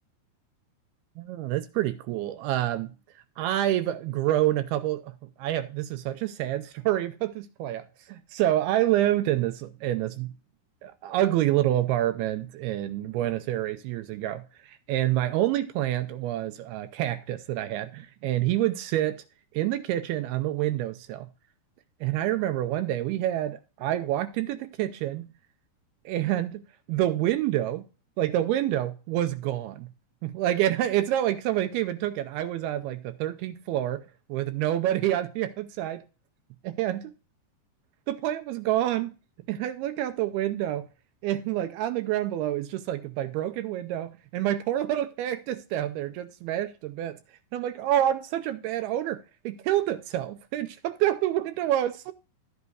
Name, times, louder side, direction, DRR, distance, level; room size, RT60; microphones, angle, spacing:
voice 1, 1.2-2.9 3.4-10.3 10.8-19.2 19.5-21.3 22.0-25.3 26.1-27.9 28.2-29.9 30.2-34.0 34.3-36.0 36.6-37.1 38.1-39.1 39.5-40.9 41.2-47.2 47.5-52.1, right 13 dB, 80° right, 2.4 m, -27 dB
12.5 x 8.0 x 2.3 m
omnidirectional pair, 4.8 m